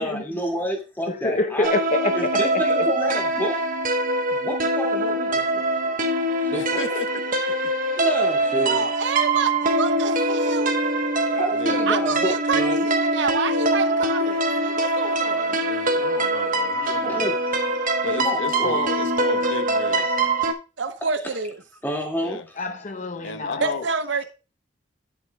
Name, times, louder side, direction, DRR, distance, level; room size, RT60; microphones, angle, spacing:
voice 1, 0.0-1.7 2.1-3.6 4.3-6.0 6.4-6.8 8.0-8.9 11.2-12.9 16.8-17.6 18.2-18.8 20.0-20.1 20.9-21.4 21.8-22.4, equal, 10° left, 2.2 m, -30 dB
voice 2, 1.1-2.9 22.6-23.8, left 2 dB, 40° left, 0.8 m, -27 dB
sound 1, 1.6-20.5, right 1 dB, 45° right, 1.2 m, -23 dB
voice 3, 6.5-7.5 11.5-11.8 15.6-17.3 18.0-20.1 22.2-22.4 23.2-23.9, left 3 dB, 85° left, 1.1 m, -33 dB
voice 4, 8.6-10.7 11.9-15.6 20.8-21.5 23.6-24.2, right 5 dB, 70° right, 0.7 m, -28 dB
10.5 x 8.7 x 2.3 m
head